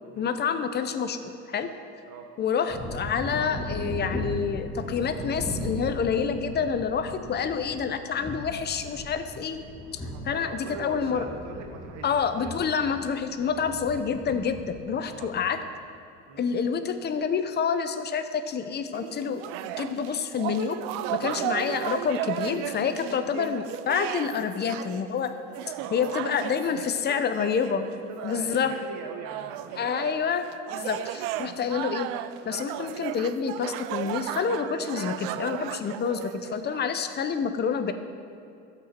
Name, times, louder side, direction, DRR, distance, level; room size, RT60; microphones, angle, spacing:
voice 1, 0.2-1.7 2.4-9.6 9.9-10.0 10.3-11.2 12.0-15.6 16.4-19.5 19.8-20.8 21.1-25.3 25.9-27.9 28.2-28.7 29.8-30.5 30.7-32.1 32.5-37.9, left 6 dB, 30° left, 9 dB, 0.7 m, -28 dB
sound 1, 2.7-15.4, equal, 10° left, 1.8 m, -37 dB
voice 2, 10.0-12.1 12.4-12.9 13.4-13.5 15.0-15.3 16.2-16.4 21.2-21.4 25.8-26.3 26.7-27.2 27.8-29.9 31.7-31.8, right 5 dB, 50° right, 3 dB, 1.2 m, -42 dB
sound 2, 18.9-28.9 29.3-36.8, right 13 dB, 70° right, 0.5 m, -35 dB
12.0 x 8.3 x 4.4 m, 2.6 s
supercardioid pair, 105°, 36 cm